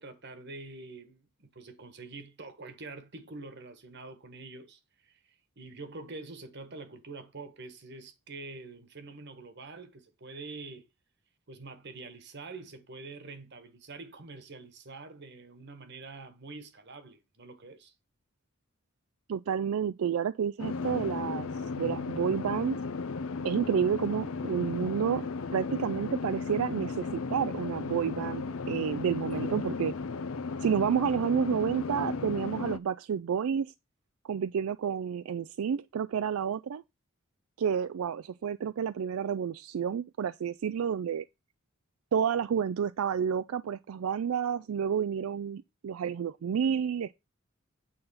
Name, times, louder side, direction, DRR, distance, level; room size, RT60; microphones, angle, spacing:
voice 1, 0.0-5.2 5.6-10.8 11.5-17.9, right 3 dB, 55° right, 1.5 m, -46 dB
voice 2, 19.3-21.5 21.8-22.8 23.4-29.9 30.6-33.7 34.2-36.8 37.6-41.2 42.1-47.1, right 7 dB, 85° right, 0.4 m, -30 dB
sound 1, 20.6-32.8, left 4 dB, 80° left, 0.6 m, -35 dB
8.9 x 4.0 x 5.7 m
head